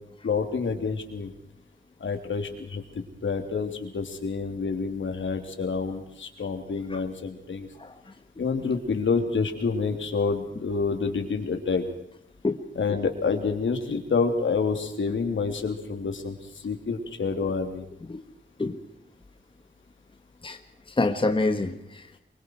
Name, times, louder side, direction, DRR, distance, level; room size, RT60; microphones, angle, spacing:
voice 1, 0.2-1.3 2.0-7.7 8.4-11.8 12.7-17.8, left 4 dB, 75° left, 5 dB, 3.3 m, -28 dB
voice 2, 20.9-22.2, left 2 dB, 25° left, 7 dB, 1.5 m, -27 dB
25.0 x 23.5 x 4.7 m, 0.81 s
wide cardioid pair, 115°, 20 cm